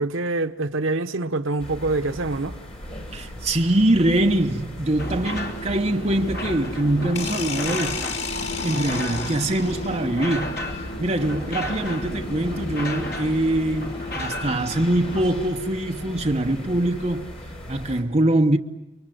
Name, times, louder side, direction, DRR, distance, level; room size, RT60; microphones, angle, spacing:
voice 1, 0.0-2.6, right 2 dB, 80° right, 0.9 m, -25 dB
sound 1, 1.6-18.0, equal, 30° left, 4.5 m, -38 dB
voice 2, 3.1-8.1 8.6-17.3 17.7-18.6, right 1 dB, 30° right, 1.0 m, -23 dB
sound 2, 5.0-15.2, left 1 dB, 50° left, 3.2 m, -33 dB
sound 3, 7.1-10.1, left 5 dB, 75° left, 5.3 m, -32 dB
30.0 x 23.0 x 7.8 m
head